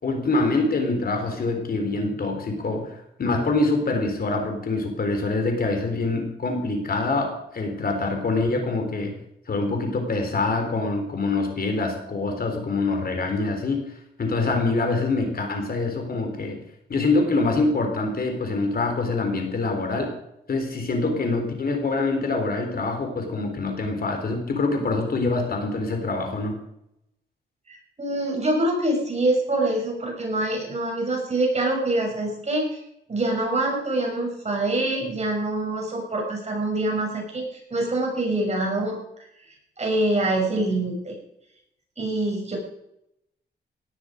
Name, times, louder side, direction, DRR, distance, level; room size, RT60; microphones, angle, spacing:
voice 1, 0.0-9.2 9.5-13.9 14.2-16.6 16.9-20.1 20.5-26.6, left 3 dB, 55° left, 5 dB, 3.7 m, -25 dB
voice 2, 27.7-32.7 33.1-39.0 39.8-41.2 42.0-42.6, right 2 dB, 35° right, 1 dB, 6.8 m, -25 dB
18.0 x 12.0 x 5.1 m, 0.80 s
cardioid pair, 100°, 18 cm